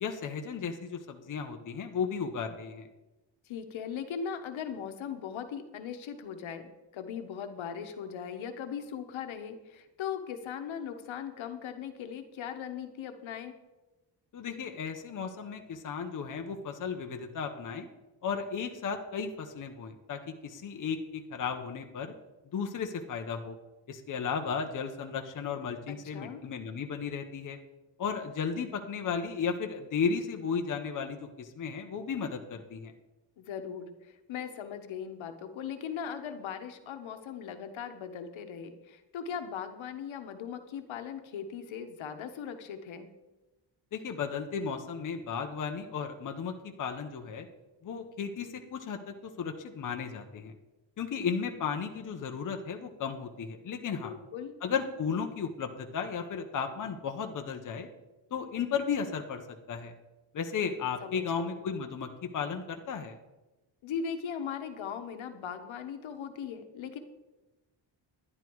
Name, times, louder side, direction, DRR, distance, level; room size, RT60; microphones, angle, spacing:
voice 1, 0.0-2.9 14.3-17.9 18.2-22.1 22.5-23.6 23.9-27.6 28.0-32.9 43.9-47.5 47.8-50.5 51.0-54.1 54.6-57.9 58.3-59.9 60.3-63.2, left 6 dB, 40° left, 5 dB, 0.9 m, -34 dB
voice 2, 3.4-6.7 6.9-13.5 25.9-26.4 33.4-43.1 54.0-54.5 61.0-61.6 63.8-67.0, left 7 dB, 75° left, 8 dB, 1.2 m, -39 dB
11.0 x 10.5 x 4.6 m, 1.1 s
wide cardioid pair, 180°, 47 cm